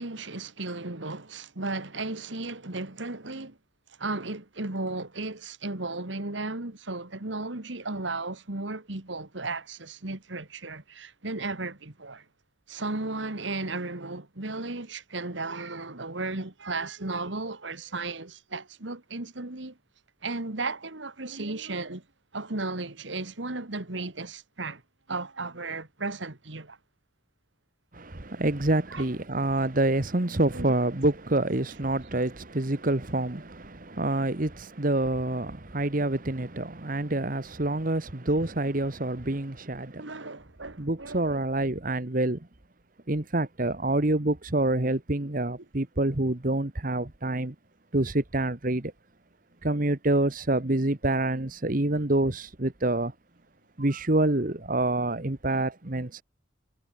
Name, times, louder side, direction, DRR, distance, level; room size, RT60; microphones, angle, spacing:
voice 1, 0.0-3.6 4.0-12.2 12.7-19.8 20.2-22.0 22.3-24.8 25.1-26.8 28.9-29.0 30.5-30.7 40.0-41.4, right 3 dB, 75° right, 2.2 m, -35 dB
voice 2, 27.9-40.1 40.8-42.5 43.1-47.5 47.9-48.9 49.6-53.1 53.8-56.2, right 2 dB, 45° right, 1.4 m, -27 dB
head